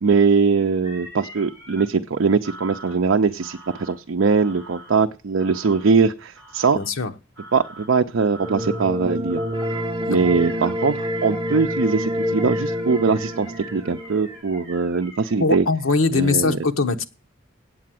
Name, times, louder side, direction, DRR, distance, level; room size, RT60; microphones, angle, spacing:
voice 1, 0.0-6.8 7.5-9.4 10.1-15.6 16.1-16.6, right 5 dB, 65° right, 5 dB, 0.5 m, -21 dB
sound 1, 0.8-1.8 2.4-3.0 3.4-3.9 4.4-4.9 5.4-5.9 6.3-6.9 7.4-7.9 8.3-8.9 9.3-9.8 10.2-15.3, right 1 dB, 15° left, 5.4 m, -43 dB
voice 2, 6.7-7.1 10.0-10.2 15.4-17.1, left 4 dB, 80° left, 6 dB, 1.0 m, -21 dB
sound 2, 8.4-14.4, equal, 25° right, 0.8 m, -27 dB
8.6 x 8.4 x 7.5 m, 0.34 s
head